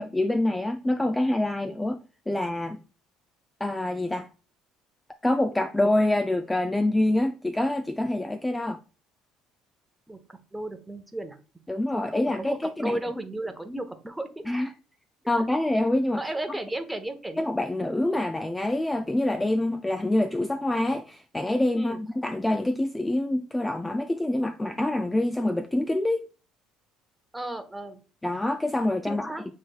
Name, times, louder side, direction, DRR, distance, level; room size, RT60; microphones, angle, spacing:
voice 1, 0.0-2.8 3.6-4.3 5.2-8.8 11.7-13.0 14.5-14.7 15.3-16.2 17.4-26.2 28.2-29.3, left 1 dB, 10° left, 0.3 m, -26 dB
voice 2, 10.1-11.4 12.4-14.4 16.2-17.4 21.7-22.0 27.3-28.0 29.0-29.5, right 1 dB, 10° right, 0.9 m, -34 dB
7.3 x 3.2 x 2.3 m
supercardioid pair, 75°, 0 cm